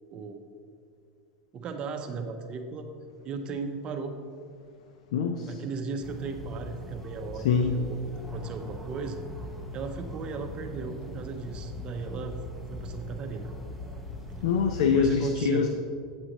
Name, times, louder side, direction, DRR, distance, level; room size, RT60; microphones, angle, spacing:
voice 1, 1.5-2.9 3.2-4.2 5.5-8.0 8.3-9.2 9.7-12.4 12.7-13.5 14.9-15.7, right 4 dB, 30° right, 5 dB, 0.7 m, -36 dB
voice 2, 5.1-5.6 7.4-7.8 14.4-15.7, left 6 dB, 85° left, 6 dB, 0.6 m, -24 dB
sound 1, 6.0-15.0, left 1 dB, 5° left, 0.9 m, -41 dB
8.7 x 7.7 x 3.0 m, 2.3 s
supercardioid pair, 140°, 3 cm